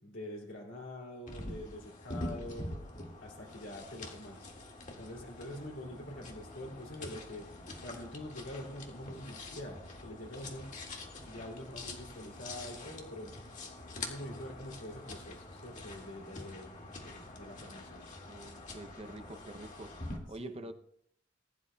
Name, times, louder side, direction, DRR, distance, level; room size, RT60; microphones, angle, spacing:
voice 1, 0.0-2.7 3.2-4.5 5.0-13.4 13.9-18.1 19.0-19.4 20.4-20.7, left 1 dB, 80° left, 2.7 m, -45 dB
sound 1, 1.3-20.2, left 2 dB, 40° left, 1.9 m, -45 dB
voice 2, 18.2-20.0 20.3-20.7, right 1 dB, 30° right, 0.6 m, -46 dB
20.0 x 11.0 x 2.3 m
head